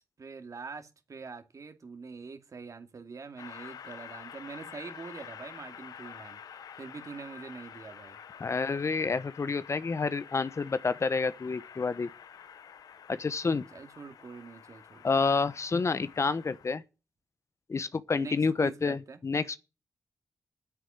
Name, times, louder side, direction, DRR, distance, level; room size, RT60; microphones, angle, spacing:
voice 1, 0.2-8.2 13.7-15.0 18.1-19.2, right 4 dB, 60° right, 2.3 m, -44 dB
Train, 3.4-16.7, left 8 dB, 85° left, 0.7 m, -48 dB
voice 2, 8.4-12.1 13.1-13.6 15.0-16.8 17.7-19.6, left 4 dB, 50° left, 0.9 m, -29 dB
9.6 x 8.3 x 9.5 m
cardioid pair, 45°, 6 cm